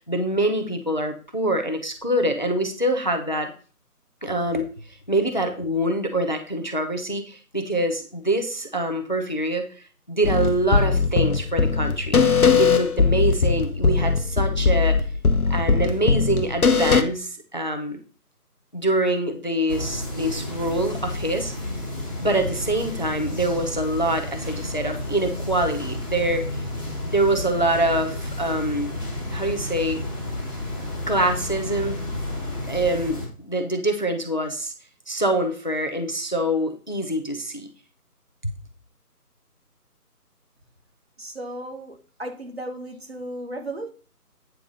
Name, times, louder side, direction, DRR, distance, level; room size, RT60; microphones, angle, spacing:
voice 1, 0.1-3.5 4.2-4.7 5.1-12.3 12.6-15.0 15.5-18.0 18.7-21.8 22.2-26.6 27.0-28.9 29.3-30.0 31.1-32.0 32.7-34.7 35.1-37.7 38.4-38.5, right 1 dB, 30° left, 7 dB, 0.8 m, -25 dB
sound 1, 10.2-17.0, left 5 dB, 65° left, 1.0 m, -20 dB
sound 2, 19.7-33.3, left 1 dB, 15° right, 1.2 m, -31 dB
voice 2, 41.2-43.9, right 1 dB, 40° right, 5 dB, 1.4 m, -35 dB
9.0 x 4.6 x 5.3 m, 0.37 s
figure-of-eight pair, 165°, 47 cm